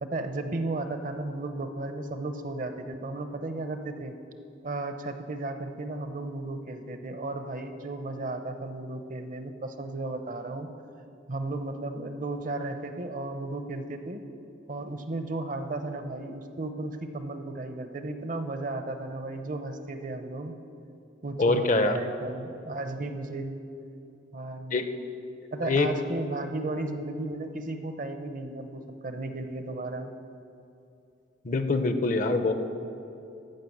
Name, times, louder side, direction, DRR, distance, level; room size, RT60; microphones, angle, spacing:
voice 1, 0.0-4.1 4.6-10.7 11.3-14.2 14.7-20.5 21.2-23.6 24.3-24.8 25.5-30.1, right 2 dB, 45° right, 8 dB, 0.7 m, -34 dB
voice 2, 21.4-22.0 24.7-24.9 25.6-25.9 31.4-32.5, left 3 dB, 40° left, 8 dB, 0.6 m, -24 dB
13.0 x 5.7 x 7.9 m, 2.8 s
head